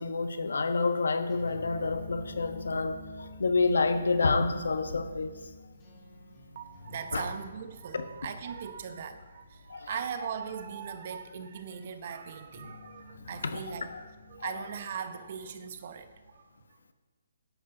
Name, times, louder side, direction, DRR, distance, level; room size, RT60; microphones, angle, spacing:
voice 1, 0.0-3.0 3.4-5.3 7.1-7.2 7.9-8.0 9.7-9.8 13.4-13.6 13.9-14.0, left 4 dB, 85° left, 9 dB, 1.1 m, -28 dB
sound 1, 1.3-16.3, left 2 dB, 15° left, 2.7 m, -50 dB
voice 2, 6.5-14.0 14.3-16.8, right 7 dB, 40° right, 9 dB, 0.9 m, -39 dB
11.5 x 9.4 x 3.9 m, 1.4 s
hypercardioid pair, 165°, 0 cm